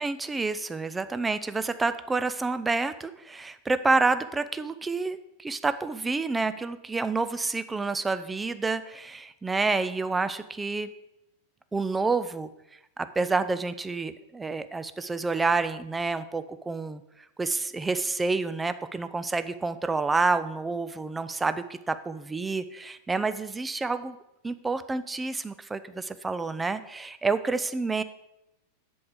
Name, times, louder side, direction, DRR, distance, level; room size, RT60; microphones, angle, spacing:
voice 1, 0.0-10.9 11.7-12.5 13.0-17.0 17.4-24.2 24.4-28.0, right 3 dB, 10° right, 12 dB, 0.5 m, -28 dB
7.8 x 7.2 x 5.0 m, 0.88 s
figure-of-eight pair, 90°, 0 cm